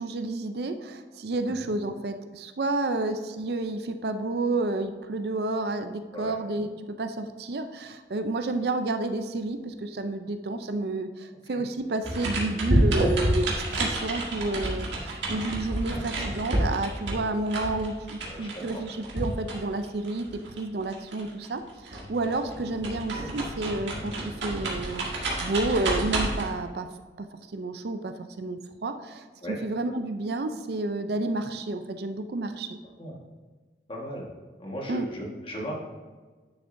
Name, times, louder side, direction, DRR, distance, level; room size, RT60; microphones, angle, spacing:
voice 1, 0.0-26.9 27.2-27.3 27.5-32.7 34.9-35.1, right 2 dB, 60° right, 8 dB, 0.5 m, -30 dB
sound 1, 12.0-21.6 21.9-26.4, right 1 dB, 85° right, 1.8 m, -29 dB
voice 2, 18.3-18.6 29.4-29.6 33.0-33.1 33.9-34.3 34.6-35.7, equal, 30° left, -2 dB, 1.5 m, -36 dB
10.5 x 6.6 x 2.6 m, 1.4 s
head